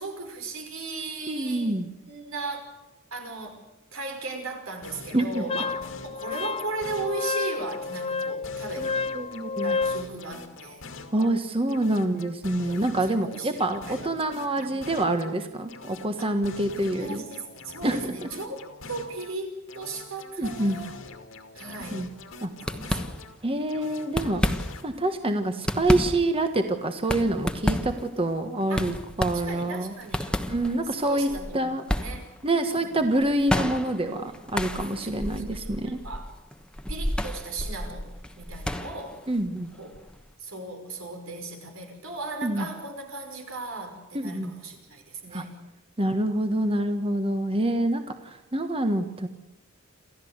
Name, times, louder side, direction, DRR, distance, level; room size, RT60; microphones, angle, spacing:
voice 1, 0.0-1.8 2.1-2.7 3.1-3.6 3.9-5.8 6.0-8.9 9.6-10.8 11.2-11.3 12.6-13.6 13.9-14.1 14.6-14.7 16.2-21.0 21.5-22.1 22.7-23.2 28.7-28.9 29.3-30.3 31.0-32.2 32.7-33.0 34.1-34.3 35.0-36.3 36.9-39.2 39.8-40.1 40.4-45.6, right 3 dB, 90° right, 3 dB, 5.5 m, -37 dB
voice 2, 1.3-1.9 5.1-5.4 8.8-8.9 9.1-9.8 11.1-17.2 17.8-18.3 20.4-20.8 21.9-22.1 22.4-22.5 23.4-24.4 24.8-29.9 30.5-31.3 31.5-31.8 32.4-36.0 39.3-39.7 42.4-42.7 44.1-44.5 45.3-45.4 46.0-49.3, right 1 dB, 30° right, 7 dB, 1.4 m, -26 dB
sound 1, 4.8-7.4 7.7-11.4 11.7-15.4 15.7-19.4 19.7-23.4 23.7-24.8, left 3 dB, 70° left, 2.3 m, -44 dB
Wind instrument woodwind instrument, 5.5-10.1, left 4 dB, 30° left, 0.7 m, -30 dB
sound 2, 21.7-22.0 22.2-22.3 22.6-23.5 24.0-25.0 25.4-40.3, left 1 dB, 5° left, 1.2 m, -31 dB
28.5 x 14.5 x 8.1 m, 0.95 s
head